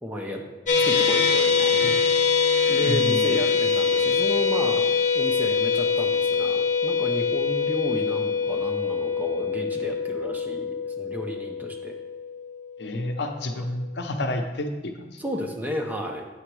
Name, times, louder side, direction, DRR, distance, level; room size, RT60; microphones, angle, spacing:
voice 1, 0.0-0.4 0.8-2.0 2.7-4.8 5.1-11.9 13.5-13.7 15.2-16.3, equal, 10° right, 1 dB, 0.7 m, -33 dB
sound 1, 0.7-13.0, left 5 dB, 45° left, 1.0 m, -24 dB
voice 2, 2.8-3.5 12.8-15.2, left 1 dB, 65° left, 4 dB, 0.7 m, -30 dB
8.7 x 3.9 x 4.7 m, 1.2 s
head